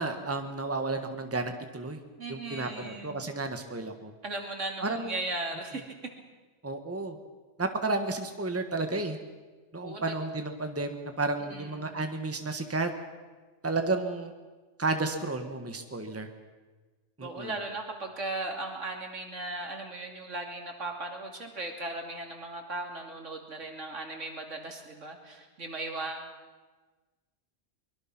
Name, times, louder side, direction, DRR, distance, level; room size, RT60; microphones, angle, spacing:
voice 1, 0.0-2.0 2.3-4.1 4.8-5.2 5.7-5.8 6.6-7.2 7.6-9.2 9.7-12.9 13.6-14.3 14.8-16.3 17.2-17.5, right 3 dB, 10° right, 6 dB, 1.4 m, -32 dB
voice 2, 2.2-3.3 4.2-5.8 9.8-10.1 11.5-12.0 17.2-26.3, right 2 dB, 75° right, 2 dB, 3.1 m, -37 dB
23.5 x 22.0 x 6.1 m, 1.3 s
omnidirectional pair, 1.3 m